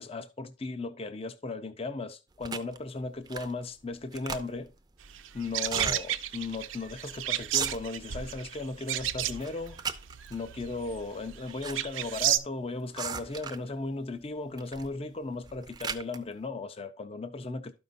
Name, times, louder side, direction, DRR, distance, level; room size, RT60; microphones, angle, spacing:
voice 1, 0.0-4.7 5.3-9.8 10.3-17.8, left 3 dB, 30° left, 0.5 m, -36 dB
sound 1, 2.4-2.8 3.3-3.6 3.9-4.7 5.6-6.0 6.5-6.6 6.8-7.1 7.4-8.1 8.5-9.0 9.4-10.4 11.2-11.8 12.0-12.1 12.9-13.7 14.6-14.9 15.3-16.2, right 5 dB, 20° right, 0.5 m, -36 dB
sound 2, 5.0-12.4, right 12 dB, 70° right, 0.6 m, -33 dB
12.5 x 5.4 x 2.6 m
head